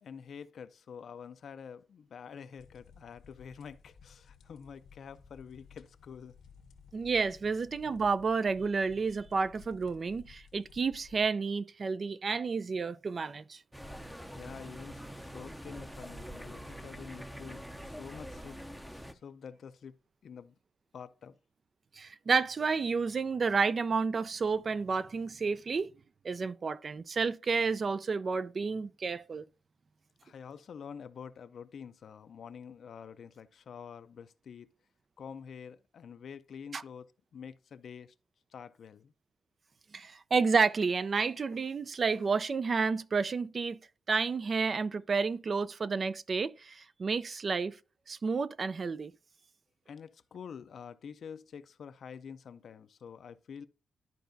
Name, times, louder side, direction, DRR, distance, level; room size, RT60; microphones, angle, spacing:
voice 1, 0.0-6.3 7.5-7.6 14.4-20.0 20.2-20.5 20.9-21.4 30.2-34.7 35.2-38.1 38.5-39.1 49.9-53.7, left 7 dB, 65° left, 0.5 m, -47 dB
sound 1, 2.5-11.3, left 6 dB, 85° left, 1.1 m, -57 dB
voice 2, 6.9-13.6 22.0-25.9 26.2-29.4 36.7-36.8 39.9-43.8 44.1-47.8 48.1-49.1, right 4 dB, 45° right, 0.4 m, -30 dB
sound 2, 13.7-19.1, equal, ahead, 0.6 m, -45 dB
12.0 x 4.5 x 2.6 m
cardioid pair, 85°, 0 cm